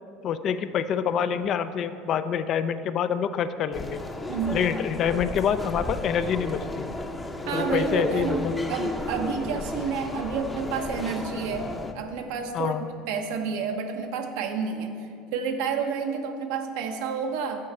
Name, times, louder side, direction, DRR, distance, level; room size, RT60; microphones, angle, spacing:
voice 1, 0.2-4.0 4.5-6.9 7.5-8.5 12.5-12.9, left 8 dB, 50° left, 12 dB, 0.4 m, -26 dB
sound 1, 3.7-11.9, left 2 dB, 15° left, 0.7 m, -33 dB
voice 2, 4.3-4.7 7.5-12.7 13.1-17.7, right 6 dB, 75° right, 5 dB, 0.8 m, -30 dB
8.4 x 4.7 x 6.5 m, 2.5 s
hypercardioid pair, 85°, 0 cm